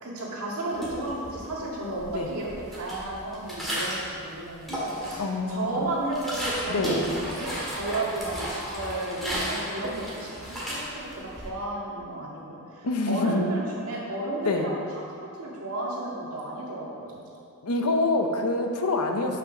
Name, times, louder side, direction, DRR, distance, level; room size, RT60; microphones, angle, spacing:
voice 1, 0.0-14.8 15.4-17.2 19.2-19.3, right 2 dB, 70° right, -5 dB, 2.0 m, -33 dB
sound 1, 0.7-1.6 1.9-4.1 4.5-5.4 5.8-11.5, equal, ahead, 2.0 m, -33 dB
voice 2, 5.2-5.8 6.7-7.0 12.8-13.4 14.4-14.7 17.6-19.4, left 2 dB, 80° left, 4 dB, 0.8 m, -26 dB
6.0 x 6.0 x 6.3 m, 2.4 s
head